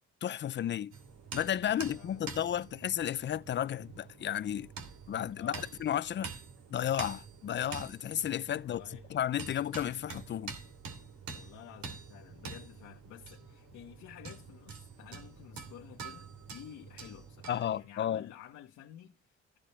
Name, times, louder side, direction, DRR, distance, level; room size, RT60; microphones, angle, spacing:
voice 1, 0.2-0.9 1.3-4.7 5.1-6.3 6.7-8.8 9.1-10.6 17.5-18.2, left 10 dB, 40° left, 0.5 m, -33 dB
sound 1, 0.9-17.8, right 5 dB, 75° right, 2.6 m, -47 dB
voice 2, 1.7-2.3 5.3-5.7 8.6-9.1 11.4-19.6, left 11 dB, 85° left, 1.2 m, -52 dB
15.0 x 5.2 x 4.2 m
cardioid pair, 115°, 29 cm